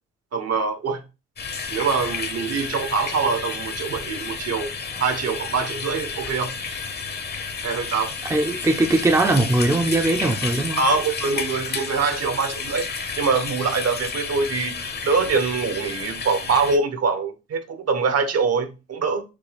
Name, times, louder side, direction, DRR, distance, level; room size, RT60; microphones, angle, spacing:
voice 1, 0.3-1.0 1.7-4.7 5.0-6.5 7.6-8.1 10.8-12.9 13.2-14.7 15.0-19.2, right 4 dB, 55° right, 1.0 m, -24 dB
sound 1, 1.4-16.8, left 5 dB, 35° left, 0.8 m, -31 dB
voice 2, 8.3-10.8, right 2 dB, 10° right, 0.6 m, -20 dB
6.6 x 2.2 x 3.4 m
cardioid pair, 90°, 30 cm